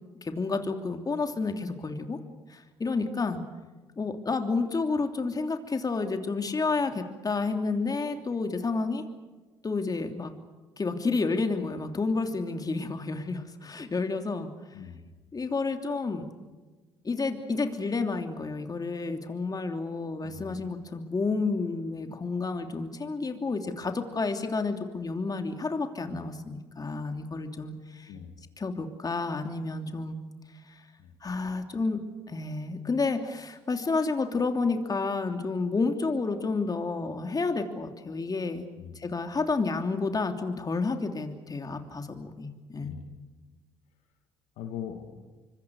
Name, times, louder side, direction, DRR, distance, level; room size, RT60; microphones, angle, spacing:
voice 1, 0.2-2.2 2.5-3.4 4.0-9.0 9.6-10.3 10.8-14.5 15.3-16.3 17.0-28.1 28.6-30.2 31.2-32.0 32.3-38.6 38.9-43.0, left 3 dB, 30° left, 6 dB, 3.0 m, -30 dB
voice 2, 14.7-15.1 20.2-20.6 28.1-28.3 31.0-31.2 38.8-39.1 42.8-43.2 44.6-45.3, left 8 dB, 75° left, 6 dB, 2.4 m, -41 dB
25.5 x 23.5 x 6.5 m, 1.3 s
hypercardioid pair, 55°, 12 cm